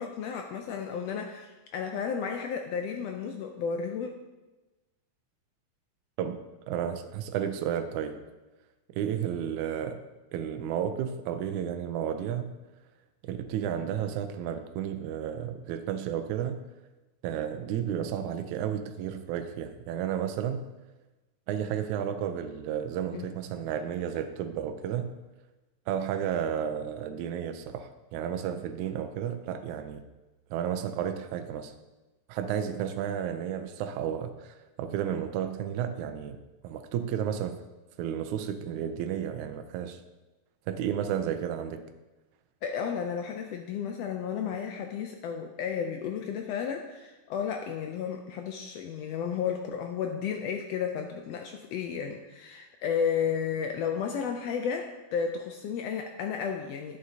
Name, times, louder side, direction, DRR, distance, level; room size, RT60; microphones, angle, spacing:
voice 1, 0.0-4.1 23.1-23.3 42.6-57.0, left 7 dB, 85° left, 4 dB, 1.4 m, -33 dB
voice 2, 6.7-8.2 9.0-10.0 10.3-12.5 13.2-16.6 17.2-20.7 21.5-25.1 25.9-30.0 30.5-31.7 32.3-36.4 36.6-37.6 38.0-40.0 40.7-41.9, right 9 dB, 80° right, 8 dB, 1.9 m, -32 dB
11.5 x 7.8 x 2.8 m, 1.1 s
omnidirectional pair, 3.5 m